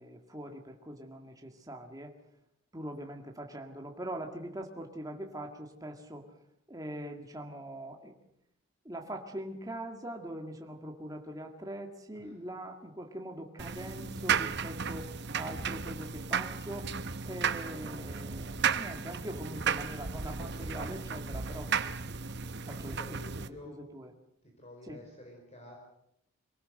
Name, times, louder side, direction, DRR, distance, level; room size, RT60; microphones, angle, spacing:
voice 1, 0.0-2.1 2.7-6.3 6.7-8.1 8.8-16.9 17.2-21.7 22.6-24.1 24.8-25.0, right 1 dB, 15° right, 3 dB, 1.9 m, -42 dB
sound 1, 13.6-23.5, right 6 dB, 50° right, 0.9 m, -34 dB
voice 2, 22.6-23.9 24.4-25.8, left 1 dB, 30° left, 2 dB, 4.5 m, -50 dB
23.5 x 18.5 x 7.7 m, 0.78 s
head